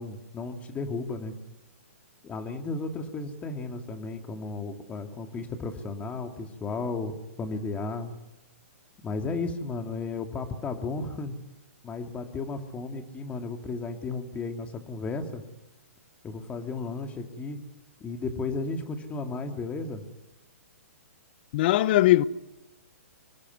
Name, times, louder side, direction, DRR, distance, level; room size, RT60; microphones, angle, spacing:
voice 1, 0.0-1.3 2.2-8.1 9.0-11.3 11.8-15.4 16.2-17.6 18.0-20.0, left 3 dB, 15° left, 2.6 m, -34 dB
voice 2, 21.5-22.2, left 15 dB, 45° left, 0.9 m, -20 dB
24.5 x 19.0 x 9.5 m
hypercardioid pair, 135°, 8 cm